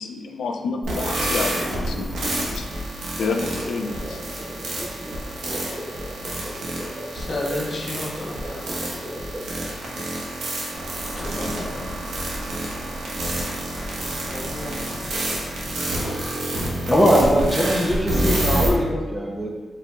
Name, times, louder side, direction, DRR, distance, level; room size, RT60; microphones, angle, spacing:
voice 1, 0.0-2.1 2.5-2.7 3.2-4.2, left 4 dB, 70° left, 4 dB, 0.5 m, -29 dB
sound 1, 0.8-18.7, right 1 dB, 80° right, 1.1 m, -28 dB
sound 2, 3.3-9.9, equal, 20° right, 1.1 m, -37 dB
voice 2, 6.5-6.9 7.1-8.8 11.2-11.9 14.0-16.1, left 1 dB, 40° left, -3 dB, 0.8 m, -34 dB
Car passing by / Engine, 10.7-15.7, right 1 dB, 65° right, 0.7 m, -37 dB
voice 3, 16.9-19.5, equal, 5° left, -2 dB, 0.5 m, -20 dB
4.9 x 4.8 x 2.3 m, 1.5 s
wide cardioid pair, 180°, 0 cm